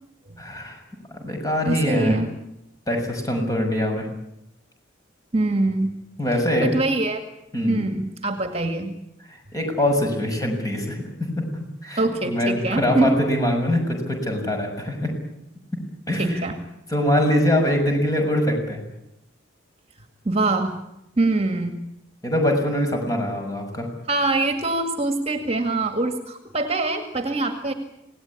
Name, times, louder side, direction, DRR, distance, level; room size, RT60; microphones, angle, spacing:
voice 1, 0.4-0.8 1.1-2.2 2.9-4.1 6.2-6.7 7.5-7.8 9.3-11.5 11.8-15.1 16.1-16.5 16.9-18.8 22.2-23.9, left 1 dB, 20° left, 3 dB, 6.7 m, -23 dB
voice 2, 1.6-2.3 5.3-6.0 6.6-7.2 7.7-9.0 12.0-13.2 16.2-16.6 20.2-20.8 21.2-21.8 24.1-27.7, right 2 dB, 30° right, 7 dB, 2.1 m, -23 dB
26.5 x 18.5 x 9.9 m, 0.85 s
head